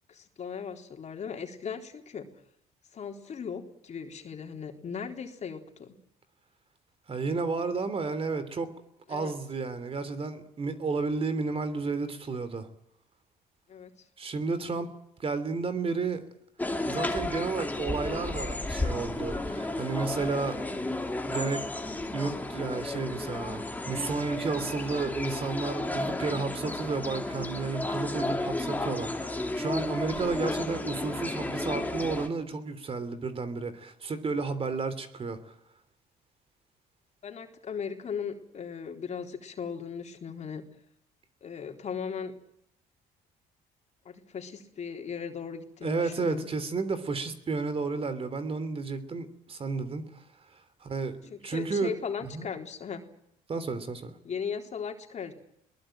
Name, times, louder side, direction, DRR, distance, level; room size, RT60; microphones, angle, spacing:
voice 1, 0.1-2.3 2.9-5.9 9.1-9.3 13.7-13.9 37.2-40.7 41.4-42.3 44.1-46.5 51.3-53.0 54.2-55.3, left 6 dB, 40° left, 3 dB, 3.9 m, -37 dB
voice 2, 7.1-8.7 9.1-12.7 14.2-14.9 15.2-16.2 16.9-20.7 21.2-21.6 22.1-35.4 45.8-50.2 50.5-51.9 52.2-52.5 53.5-54.1, right 4 dB, 35° right, 12 dB, 3.1 m, -32 dB
sound 1, 16.6-32.3, left 2 dB, 10° left, 2.8 m, -33 dB
22.0 x 20.5 x 9.1 m, 0.76 s
cardioid pair, 110°, 17 cm